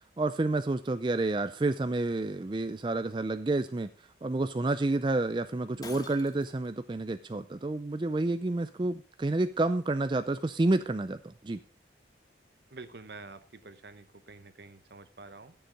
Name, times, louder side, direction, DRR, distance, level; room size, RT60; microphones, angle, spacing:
voice 1, 0.2-3.9 4.2-11.6, right 2 dB, 25° right, 10 dB, 0.4 m, -29 dB
Shatter, 5.8-6.7, left 3 dB, 20° left, 1.0 m, -47 dB
voice 2, 12.7-15.5, right 3 dB, 65° right, 12 dB, 0.9 m, -48 dB
12.0 x 7.2 x 5.1 m, 0.40 s
head